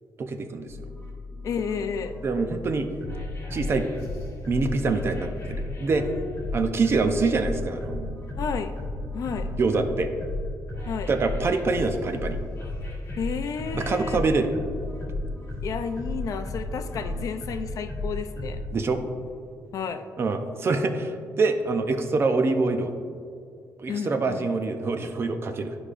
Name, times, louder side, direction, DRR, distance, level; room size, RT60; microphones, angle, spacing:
voice 1, 0.2-0.7 2.2-2.9 3.5-3.9 4.5-6.1 6.5-8.2 9.6-10.1 11.1-12.4 13.7-14.5 18.7-19.0 20.2-22.9 23.8-25.8, right 3 dB, 40° right, 7 dB, 0.5 m, -25 dB
sound 1, 0.7-18.7, left 2 dB, 40° left, 1.7 m, -34 dB
voice 2, 1.4-2.2 5.9-6.4 8.4-8.7 9.1-9.5 10.9-11.1 13.2-14.2 15.6-18.6 19.7-20.1 23.9-24.5, left 6 dB, 55° left, 8 dB, 0.4 m, -32 dB
12.0 x 4.9 x 2.5 m, 2.3 s
cardioid pair, 150°, 7 cm